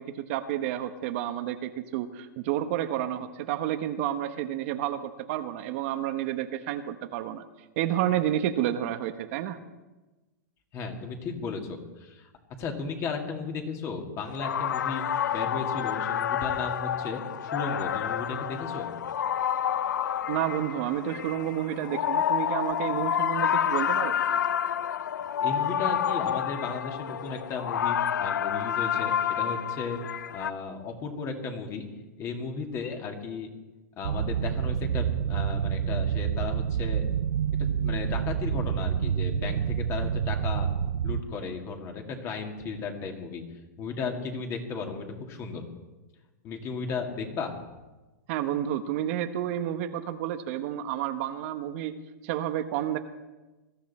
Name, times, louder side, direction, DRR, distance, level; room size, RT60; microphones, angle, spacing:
voice 1, 0.0-7.4 7.8-9.6 20.3-24.1 48.3-51.9 52.2-53.0, right 11 dB, 50° right, 8 dB, 1.1 m, -30 dB
voice 2, 10.7-12.3 12.6-15.0 15.3-18.9 25.4-30.0 30.3-31.9 32.2-33.5 34.0-37.0 37.8-40.7 41.0-43.4 43.8-45.6 46.4-47.5, left 4 dB, 30° left, 3 dB, 2.3 m, -35 dB
sound 1, 14.2-30.5, left 9 dB, 85° left, 0.6 m, -29 dB
sound 2, 34.0-41.2, right 8 dB, 80° right, 0.7 m, -28 dB
21.0 x 13.5 x 4.3 m, 1.1 s
hypercardioid pair, 140°, 10 cm